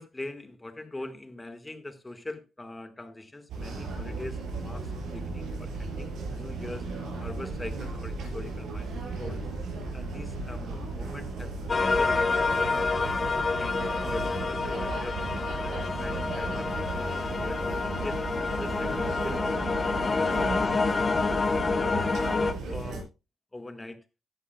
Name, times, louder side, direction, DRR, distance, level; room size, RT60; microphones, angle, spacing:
voice 1, 0.0-6.9 7.2-8.9 9.2-9.4 9.9-11.5 11.8-12.6 13.0-13.3 13.6-17.6 18.0-21.0 21.5-22.1 22.6-23.1 23.5-24.0, left 2 dB, 15° left, 8 dB, 1.6 m, -42 dB
sound 1, 3.5-23.0, right 3 dB, 85° right, 6.2 m, -35 dB
sound 2, 11.7-22.5, left 4 dB, 35° left, 1.0 m, -28 dB
15.5 x 11.5 x 2.3 m, 0.27 s
cardioid pair, 105°, 0 cm